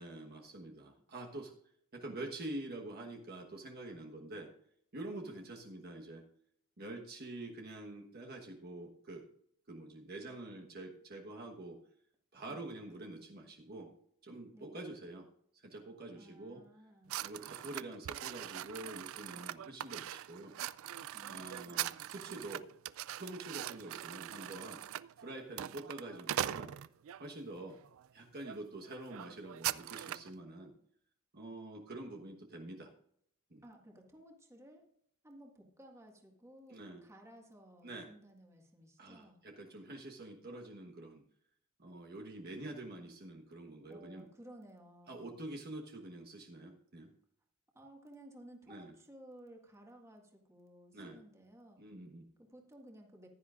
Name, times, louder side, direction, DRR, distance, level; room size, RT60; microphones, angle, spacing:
voice 1, 0.0-1.5 1.9-4.5 4.9-6.2 6.8-9.2 9.7-11.8 12.3-13.9 14.2-15.3 15.5-16.6 17.2-20.5 21.3-22.7 23.2-24.8 25.2-26.7 27.2-27.8 28.1-30.7 31.3-32.9 33.5-33.6 36.7-37.0 37.8-38.1 39.0-41.2 41.8-44.3 45.1-47.1 48.7-48.9 50.9-51.2 51.8-52.3, right 2 dB, 50° right, 1 dB, 1.3 m, -46 dB
voice 2, 16.1-17.2 21.1-21.9 33.6-34.8 35.2-39.4 43.9-45.4 47.7-51.8 52.4-53.3, right 1 dB, 15° right, 1 dB, 1.8 m, -57 dB
sound 1, 17.1-27.2 27.8-28.1 28.4-28.6 28.8-30.3, right 12 dB, 65° right, 0.3 m, -41 dB
15.5 x 11.0 x 2.5 m, 0.66 s
head